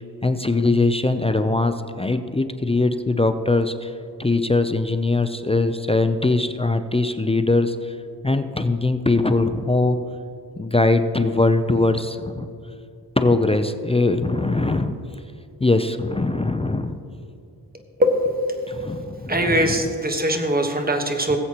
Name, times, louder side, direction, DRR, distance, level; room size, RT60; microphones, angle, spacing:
voice 1, 0.2-3.9 4.2-8.0 8.2-10.0 10.6-12.5 13.2-14.9 15.6-17.0 18.7-19.8 21.3-21.4, left 2 dB, 15° left, 9 dB, 0.5 m, -21 dB
voice 2, 19.3-21.4, equal, 20° right, 5 dB, 1.3 m, -21 dB
18.5 x 8.0 x 3.0 m, 2.5 s
cardioid pair, 60°, 41 cm